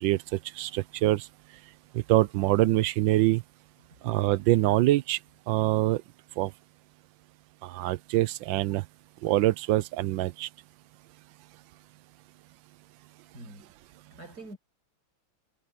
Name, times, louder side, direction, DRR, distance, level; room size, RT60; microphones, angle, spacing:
voice 1, 0.0-1.3 1.9-3.4 4.0-5.2 5.5-6.0 6.4-6.5 7.6-8.8 9.2-10.5, right 16 dB, 80° right, 1.3 m, -25 dB
voice 2, 13.3-13.7 14.1-14.6, right 2 dB, 50° right, 8.0 m, -45 dB
omnidirectional pair, 2.1 m